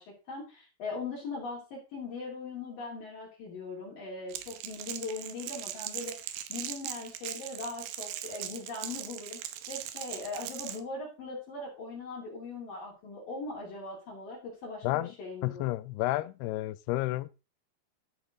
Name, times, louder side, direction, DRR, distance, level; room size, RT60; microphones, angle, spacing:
voice 1, 0.0-9.4 9.7-15.7, left 3 dB, 55° left, 4.5 m, -40 dB
Crackle, 4.3-10.8, right 12 dB, 85° right, 3.1 m, -40 dB
voice 2, 15.4-17.3, left 17 dB, 80° left, 2.6 m, -31 dB
13.0 x 7.0 x 3.8 m
omnidirectional pair, 4.8 m